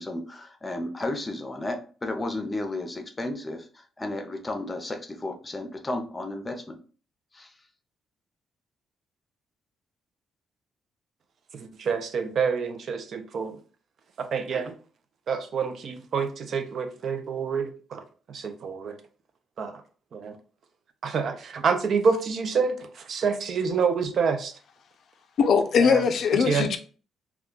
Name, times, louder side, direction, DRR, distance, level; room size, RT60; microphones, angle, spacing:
voice 1, 0.0-3.7 4.0-6.8 7.3-7.5, left 2 dB, 20° left, 5 dB, 0.6 m, -33 dB
voice 2, 11.5-13.6 14.2-14.7 15.3-18.0 18.3-19.0 19.6-19.8 20.1-20.4 21.0-24.5 25.8-26.0 26.4-26.7, right 5 dB, 60° right, 8 dB, 0.4 m, -27 dB
voice 3, 25.4-26.8, left 6 dB, 60° left, 8 dB, 0.4 m, -21 dB
2.3 x 2.2 x 3.7 m, 0.40 s
cardioid pair, 90°, 0 cm